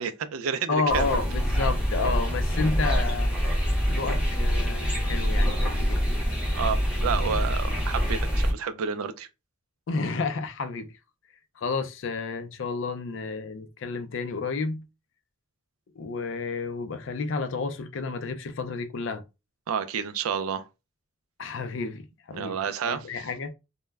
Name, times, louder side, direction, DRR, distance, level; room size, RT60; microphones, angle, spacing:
voice 1, 0.0-1.2 6.5-9.3 19.7-20.6 22.3-23.0, right 6 dB, 85° right, 0.4 m, -30 dB
voice 2, 0.7-3.4 3.9-6.0 9.9-10.9 11.6-14.8 16.0-19.2 21.4-22.6 22.8-23.5, left 4 dB, 60° left, 0.4 m, -31 dB
sound 1, 0.9-8.5, equal, 5° right, 0.6 m, -25 dB
2.1 x 2.0 x 3.3 m
head